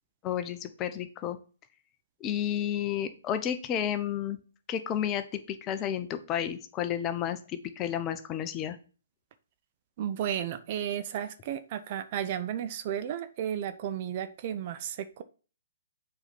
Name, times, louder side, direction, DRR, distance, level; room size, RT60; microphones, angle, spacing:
voice 1, 0.2-1.4 2.2-4.4 4.7-8.8, left 10 dB, 25° left, 0.8 m, -31 dB
voice 2, 10.0-15.2, right 10 dB, 40° right, 0.7 m, -33 dB
7.1 x 4.4 x 5.3 m
figure-of-eight pair, 130°, 0 cm